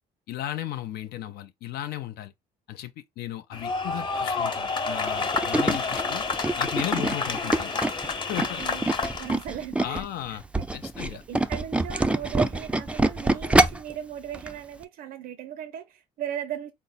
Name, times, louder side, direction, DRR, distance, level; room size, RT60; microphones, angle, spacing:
voice 1, 0.3-2.3 2.7-6.3 6.6-7.7 8.3-8.6 9.8-10.4 10.7-11.2, left 13 dB, 70° left, 0.4 m, -35 dB
sound 1, 3.5-9.4, left 4 dB, 30° left, 0.8 m, -29 dB
Tools, 5.1-10.1 10.4-13.9 14.3-14.5 14.8-14.9, right 2 dB, 5° right, 0.3 m, -25 dB
voice 2, 8.6-8.9 9.2-10.0 10.3-10.6 11.1-16.7, right 10 dB, 60° right, 0.5 m, -37 dB
4.4 x 2.0 x 3.9 m
cardioid pair, 110°, 17 cm